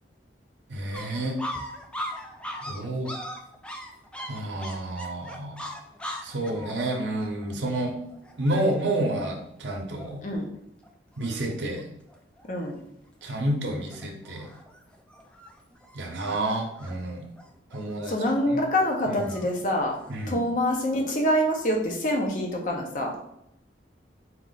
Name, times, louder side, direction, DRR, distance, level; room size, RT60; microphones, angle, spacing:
voice 1, 0.7-1.4 2.6-3.1 4.3-5.6 6.2-8.0 8.4-10.2 11.2-11.9 13.2-14.5 15.9-17.3 17.7-18.1 18.5-18.6 19.1-19.2 20.1-20.4, right 1 dB, 80° right, 1 dB, 0.7 m, -29 dB
sound 1, 0.9-10.4 10.8-10.9 11.2-11.8 12.1-12.8 13.2-13.5 13.9-20.4, equal, 5° left, 0.3 m, -41 dB
voice 2, 12.5-12.8 18.1-20.0 20.3-23.1, equal, 45° left, 0 dB, 0.6 m, -25 dB
4.2 x 2.4 x 4.0 m, 0.78 s
head